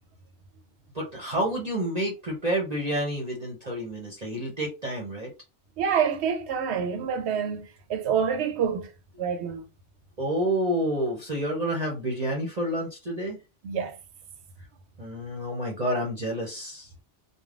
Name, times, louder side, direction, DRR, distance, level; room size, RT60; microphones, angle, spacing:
voice 1, 0.9-5.3 10.2-13.4 15.0-16.9, right 1 dB, 40° right, 0.8 m, -29 dB
voice 2, 5.8-8.9 9.2-9.6 13.6-14.0, right 7 dB, 75° right, 0.8 m, -27 dB
3.3 x 2.2 x 2.4 m
omnidirectional pair, 1.2 m